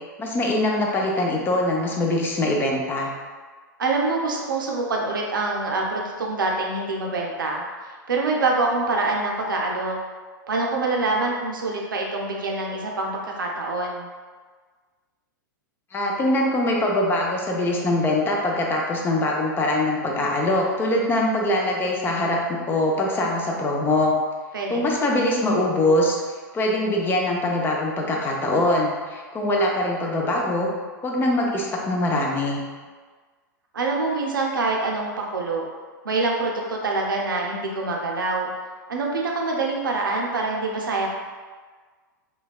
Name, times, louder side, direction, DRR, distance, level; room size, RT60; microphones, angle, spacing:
voice 1, 0.2-3.1 15.9-24.1 24.7-26.2 26.5-30.7 31.0-32.6, left 1 dB, 20° left, -1 dB, 0.5 m, -23 dB
voice 2, 3.8-7.6 8.1-10.0 10.5-14.1 24.5-25.0 33.7-35.7 36.0-38.5 38.9-41.1, right 3 dB, 80° right, -1 dB, 0.5 m, -25 dB
3.2 x 2.2 x 2.3 m, 1.5 s
hypercardioid pair, 100°, 11 cm